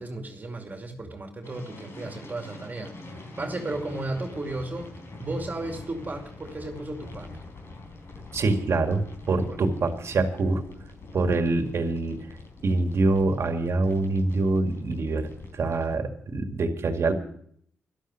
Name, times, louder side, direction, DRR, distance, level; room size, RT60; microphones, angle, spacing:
voice 1, 0.0-4.9 5.2-7.4 9.5-9.6, right 2 dB, 35° right, 4 dB, 2.5 m, -34 dB
sound 1, 1.4-15.9, left 2 dB, 55° left, 4.2 m, -44 dB
voice 2, 8.3-10.6 11.1-12.2 12.6-17.1, right 3 dB, 60° right, 6 dB, 2.0 m, -25 dB
12.5 x 12.0 x 6.3 m, 0.64 s
cardioid pair, 60°, 5 cm